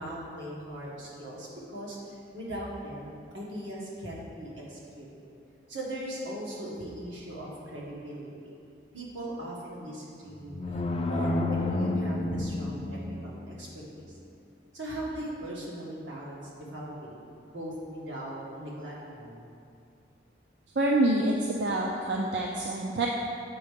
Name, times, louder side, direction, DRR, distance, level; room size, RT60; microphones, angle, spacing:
voice 1, 0.0-2.0 2.3-5.1 5.7-8.3 8.9-14.2 14.7-16.4 16.7-17.2 17.4-19.5, right 1 dB, 85° right, -5 dB, 1.8 m, -39 dB
sound 1, 10.2-13.5, left 2 dB, 30° left, 0.4 m, -30 dB
voice 2, 20.8-23.1, right 1 dB, 65° right, -1 dB, 0.5 m, -26 dB
7.6 x 4.7 x 5.2 m, 2.5 s
head